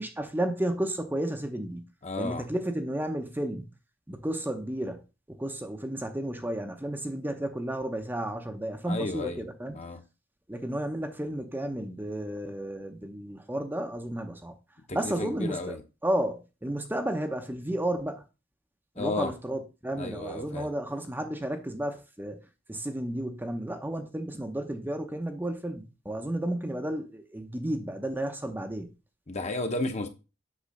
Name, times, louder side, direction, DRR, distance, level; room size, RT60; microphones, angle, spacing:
voice 1, 0.0-1.8 2.2-3.7 4.1-5.0 5.3-9.8 10.5-14.5 14.9-15.8 16.0-18.2 19.0-22.4 22.7-28.9, right 1 dB, 10° right, 0.7 m, -32 dB
voice 2, 2.0-2.5 8.9-9.4 9.7-10.0 14.9-15.8 19.0-19.3 20.0-20.7 29.3-30.1, left 2 dB, 35° left, 1.0 m, -33 dB
8.3 x 3.1 x 6.3 m
head